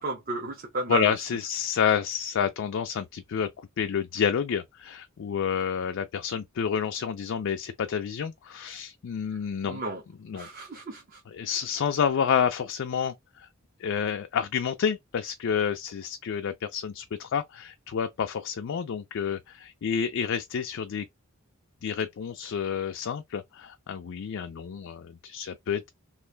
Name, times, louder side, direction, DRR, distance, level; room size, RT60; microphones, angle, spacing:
voice 1, 0.0-1.3 9.3-10.0 10.3-11.2, right 3 dB, 45° right, 0.9 m, -34 dB
voice 2, 0.9-9.8 10.3-10.5 11.4-13.5 13.8-21.1 21.8-25.9, left 7 dB, 60° left, 0.4 m, -29 dB
3.1 x 2.5 x 3.3 m
head